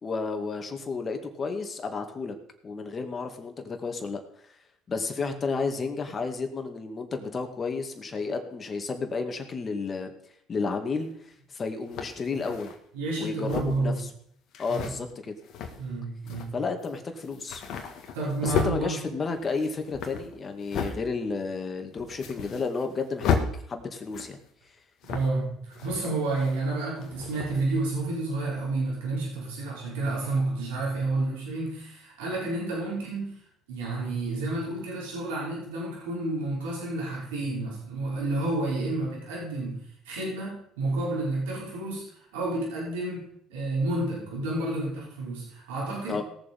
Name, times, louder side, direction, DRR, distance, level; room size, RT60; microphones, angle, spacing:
voice 1, 0.0-2.4 2.6-4.2 4.9-10.1 10.5-12.7 13.2-14.1 14.6-15.4 16.5-17.6 18.4-23.4 23.7-24.4 46.1-46.2, left 4 dB, 35° left, 6 dB, 2.3 m, -32 dB
sound 1, 11.0-11.1 11.9-12.8 13.4-13.9 14.5-14.9 15.4-15.9 16.3-16.5 16.8-17.0 17.2-18.8 19.3-21.0 21.4-21.5 21.9-22.9 23.2-23.5 24.0-24.5 25.0-25.4 25.7-26.7 27.0-27.7, left 6 dB, 65° left, 1.9 m, -33 dB
voice 2, 12.9-14.1 14.7-14.9 15.8-16.6 18.1-19.0 25.0-33.4 33.7-42.1 42.3-46.2, right 2 dB, 85° right, -4 dB, 5.5 m, -30 dB
18.0 x 7.3 x 5.5 m, 0.67 s
hypercardioid pair, 70°, 0 cm